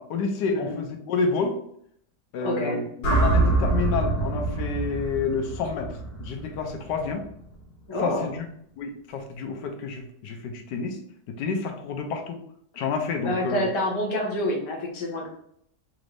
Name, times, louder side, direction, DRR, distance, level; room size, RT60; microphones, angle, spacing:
voice 1, 0.0-1.6 2.3-2.8 3.1-7.2 8.0-8.5 8.8-11.0 11.3-12.4 12.8-13.6, left 4 dB, 85° left, 5 dB, 1.2 m, -29 dB
voice 2, 2.4-2.8 7.9-8.3 13.2-15.3, left 1 dB, 30° left, -2 dB, 0.5 m, -27 dB
sound 1, 3.0-7.2, right 3 dB, 70° left, 1.6 m, -25 dB
4.1 x 2.6 x 3.2 m, 0.69 s
omnidirectional pair, 1.8 m